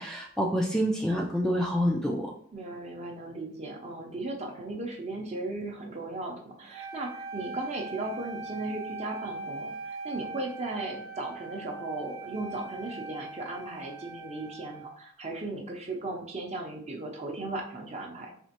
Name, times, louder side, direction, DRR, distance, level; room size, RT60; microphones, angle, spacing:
voice 1, 0.0-2.3, equal, 5° left, -2 dB, 0.3 m, -27 dB
voice 2, 2.5-18.3, right 2 dB, 30° right, 1 dB, 0.6 m, -36 dB
Wind instrument woodwind instrument, 6.7-15.0, right 3 dB, 75° right, 0.9 m, -41 dB
4.3 x 2.9 x 2.9 m, 0.63 s
head